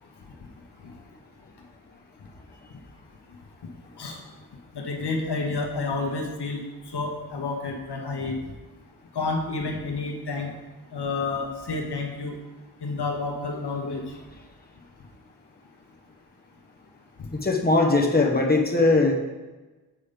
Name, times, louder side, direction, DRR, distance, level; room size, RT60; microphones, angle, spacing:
voice 1, 4.7-8.4 9.1-10.5 10.9-12.4 12.8-14.1 17.2-17.3, left 3 dB, 80° left, 2 dB, 1.1 m, -30 dB
voice 2, 17.3-19.1, left 3 dB, 25° left, 0 dB, 1.1 m, -20 dB
7.5 x 5.4 x 5.1 m, 1.2 s
wide cardioid pair, 95°, 39 cm